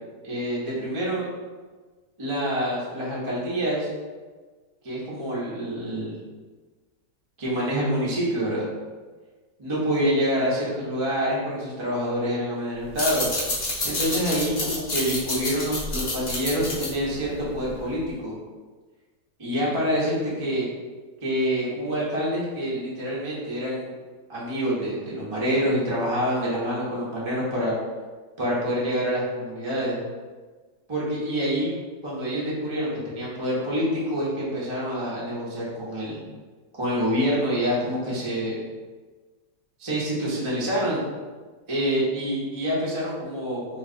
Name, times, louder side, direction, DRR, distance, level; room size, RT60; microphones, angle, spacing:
voice 1, 0.2-1.3 2.2-3.9 4.8-6.2 7.4-8.7 9.6-13.3 13.8-18.3 19.4-20.7 21.2-23.9 24.3-27.7 28.4-30.0 30.9-31.7 32.0-36.2 36.7-38.6 39.8-41.0 41.7-43.8, equal, 30° right, -7 dB, 0.6 m, -26 dB
sound 1, 12.8-18.0, left 1 dB, 55° left, 0.5 m, -29 dB
3.0 x 2.6 x 3.7 m, 1.4 s
omnidirectional pair, 1.9 m